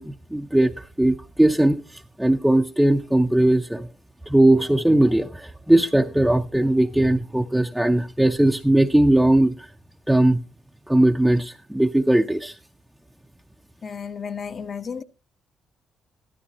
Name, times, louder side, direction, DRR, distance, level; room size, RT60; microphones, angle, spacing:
voice 1, 0.0-3.9 4.3-9.7 10.1-10.4 10.9-12.6, right 1 dB, 5° right, 0.6 m, -19 dB
voice 2, 13.8-15.0, left 6 dB, 45° left, 1.0 m, -33 dB
13.0 x 13.0 x 2.9 m
cardioid pair, 90°, 0 cm